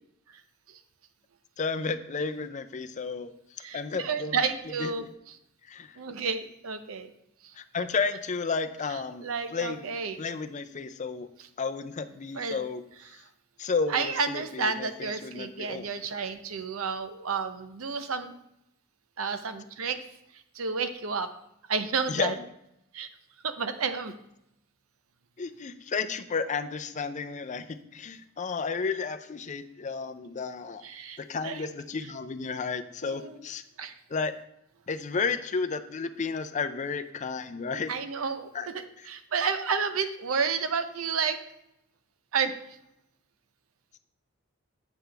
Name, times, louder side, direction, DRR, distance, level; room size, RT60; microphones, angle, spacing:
voice 1, 1.6-4.4 4.8-4.9 5.7-6.0 7.6-9.9 10.2-11.3 11.6-12.8 13.6-15.9 22.1-22.4 25.4-30.8 31.2-33.6 34.1-34.3 34.9-37.9 38.5-38.7, left 4 dB, 35° left, 9 dB, 0.5 m, -32 dB
voice 2, 3.6-5.1 6.0-7.1 7.4-7.5 9.2-10.3 12.3-12.6 13.1-13.2 13.9-18.3 19.2-20.0 20.3-21.3 21.7-22.3 22.9-23.1 23.4-24.1 30.8-31.7 33.0-33.4 33.8-34.0 37.9-41.4 42.3-42.5, right 5 dB, 90° right, 10 dB, 0.7 m, -31 dB
8.0 x 7.7 x 3.4 m, 0.81 s
head